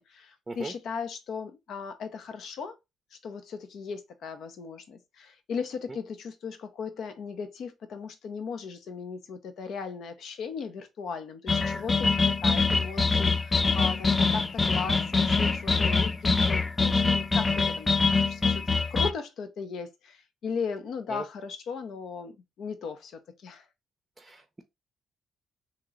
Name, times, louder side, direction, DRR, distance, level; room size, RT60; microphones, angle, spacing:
voice 1, 0.0-2.8 3.1-23.7, left 5 dB, 70° left, 0.8 m, -37 dB
sound 1, 11.5-19.1, left 4 dB, 25° left, 0.4 m, -24 dB
voice 2, 24.2-24.6, right 3 dB, 20° right, 0.6 m, -37 dB
3.0 x 2.9 x 3.7 m
cardioid pair, 90°, 0 cm